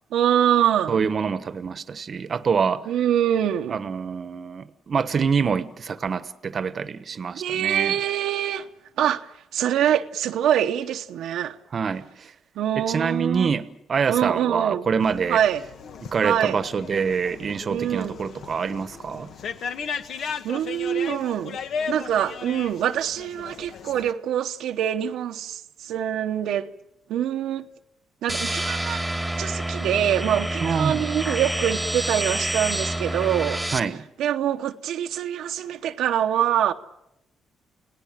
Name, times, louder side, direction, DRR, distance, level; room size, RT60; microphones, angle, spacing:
voice 1, 0.1-1.1 2.9-3.8 7.3-8.7 9.0-11.6 12.6-13.5 14.1-14.9 15.3-15.6 16.2-16.6 17.7-18.2 20.4-21.6 21.9-26.7 27.1-27.6 28.2-29.0 29.4-33.6 34.2-36.7, right 10 dB, 80° right, 1.0 m, -24 dB
voice 2, 0.9-2.9 3.7-8.0 11.7-12.3 12.8-15.4 16.0-19.3 30.6-31.0 33.7-34.0, right 6 dB, 45° right, 1.1 m, -26 dB
sound 1, 15.0-24.1, left 6 dB, 65° left, 1.5 m, -36 dB
sound 2, 28.3-33.8, right 1 dB, 5° right, 1.5 m, -28 dB
30.0 x 18.0 x 7.5 m
cardioid pair, 90°, 0 cm